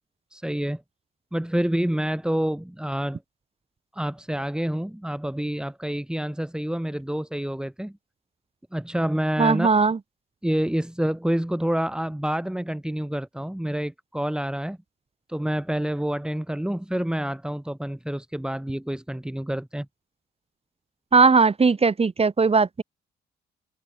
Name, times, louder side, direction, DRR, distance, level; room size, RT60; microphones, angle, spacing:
voice 1, 0.3-0.8 1.3-3.2 3.9-7.9 8.7-9.7 10.4-14.8 15.3-19.9, right 1 dB, 5° right, 4.2 m, -28 dB
voice 2, 9.4-10.0 21.1-22.8, right 4 dB, 30° right, 2.4 m, -19 dB
cardioid pair, 90°, 20 cm